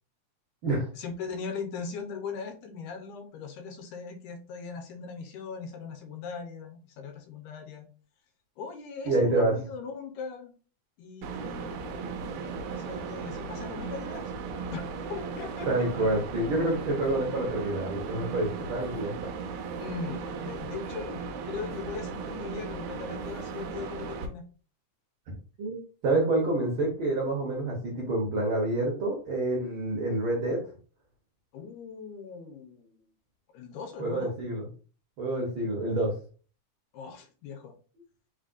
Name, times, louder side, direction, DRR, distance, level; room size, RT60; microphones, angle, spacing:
voice 1, 0.9-7.9 8.6-10.5 11.0-14.3 14.7-14.8 15.1-15.7 19.8-24.5 31.5-33.1 33.5-34.3 36.9-37.7, left 5 dB, 80° left, 5 dB, 2.2 m, -40 dB
voice 2, 9.1-9.5 15.7-19.3 25.6-30.6 34.0-34.7 35.2-36.1, right 2 dB, 60° right, -1 dB, 1.4 m, -28 dB
sound 1, 11.2-24.3, right 5 dB, 75° right, 1.6 m, -36 dB
4.5 x 3.9 x 2.5 m, 0.38 s
omnidirectional pair, 3.5 m